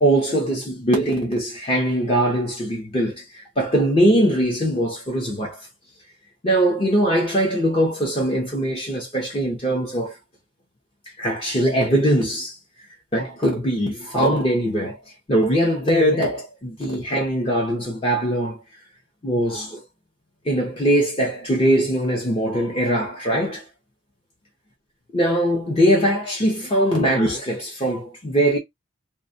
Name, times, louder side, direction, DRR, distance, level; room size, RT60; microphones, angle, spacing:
voice 1, 0.0-5.6 6.4-10.1 11.2-12.6 13.1-15.0 15.3-18.6 19.2-19.8 20.4-23.6 25.1-28.6, right 1 dB, 30° left, 0.6 m, -21 dB
2.3 x 2.1 x 2.5 m
head